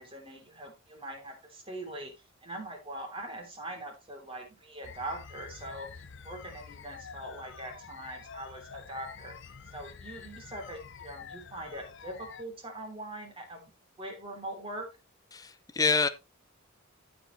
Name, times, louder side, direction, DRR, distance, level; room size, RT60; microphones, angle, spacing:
voice 1, 0.0-2.1 2.4-9.3 9.7-13.7 14.0-14.9, right 1 dB, 25° right, 3.2 m, -42 dB
sound 1, 4.8-12.4, left 6 dB, 60° left, 0.7 m, -47 dB
voice 2, 15.3-16.1, left 4 dB, 15° left, 0.6 m, -27 dB
15.0 x 5.3 x 3.1 m
head